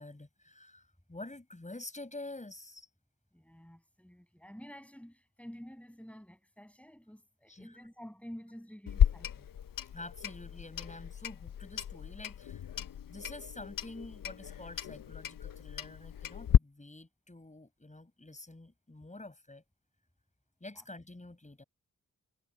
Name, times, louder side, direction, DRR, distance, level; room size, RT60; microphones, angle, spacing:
voice 1, 0.0-2.9 7.5-7.8 9.9-12.6 13.1-19.6 20.6-21.6, left 2 dB, 20° left, 6.7 m, -48 dB
voice 2, 3.3-9.5 20.8-20.9, equal, 5° left, 7.2 m, -50 dB
Clock, 8.9-16.6, left 9 dB, 75° left, 0.6 m, -32 dB
wide cardioid pair, 95°, 34 cm